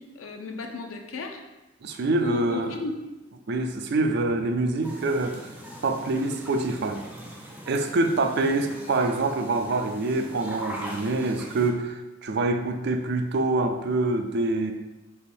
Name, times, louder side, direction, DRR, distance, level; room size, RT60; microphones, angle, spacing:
voice 1, 0.0-1.4 2.2-2.9 8.2-8.3, left 4 dB, 90° left, 3 dB, 0.6 m, -35 dB
voice 2, 1.8-2.8 3.5-5.4 5.8-7.1 7.7-14.7, right 2 dB, 55° right, 6 dB, 0.4 m, -25 dB
sound 1, 4.8-11.7, equal, 10° right, 0.6 m, -41 dB
3.5 x 3.0 x 4.3 m, 1.0 s
head